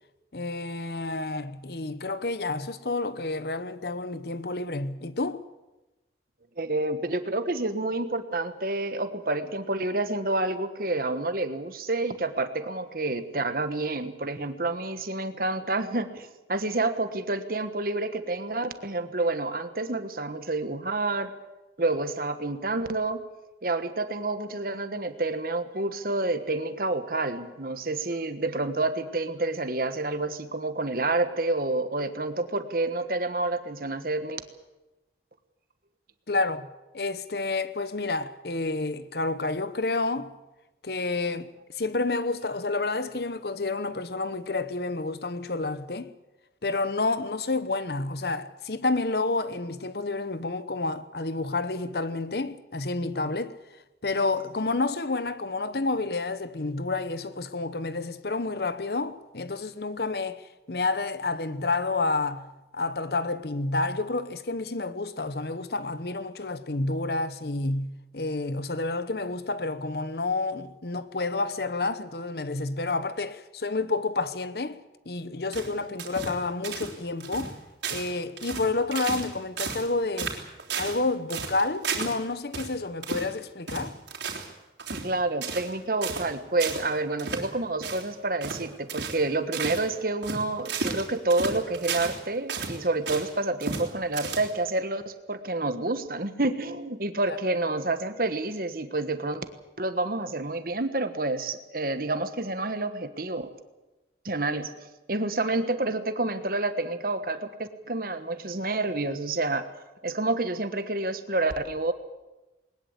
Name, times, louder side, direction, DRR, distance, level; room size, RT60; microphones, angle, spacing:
voice 1, 0.3-5.5 36.3-36.7 36.9-40.3 40.8-46.1 46.6-53.6 54.0-74.8 75.1-77.6 77.9-80.4 80.8-84.0, left 3 dB, 60° left, 1.0 m, -29 dB
voice 2, 6.6-21.3 21.8-23.2 23.6-34.4 84.9-99.5 99.8-103.5 104.2-104.7 105.1-109.7 110.0-111.9, right 2 dB, 50° right, 1.4 m, -29 dB
sound 1, 75.5-76.4 76.6-76.9 77.2-77.5 77.8-78.1 78.4-79.3 79.6-79.9 80.2-81.0 81.3-82.2 82.5-82.7 83.0-83.3 83.7-84.5 84.8-85.1 85.4-85.7 86.0-86.3 86.6-86.9 87.2-87.5 87.8-88.1 88.4-88.6 88.9-89.2 89.5-89.9 90.2-92.2 92.5-93.3 93.6-93.9 94.1-94.7, right 5 dB, 85° right, 3.5 m, -33 dB
20.5 x 20.0 x 8.2 m
head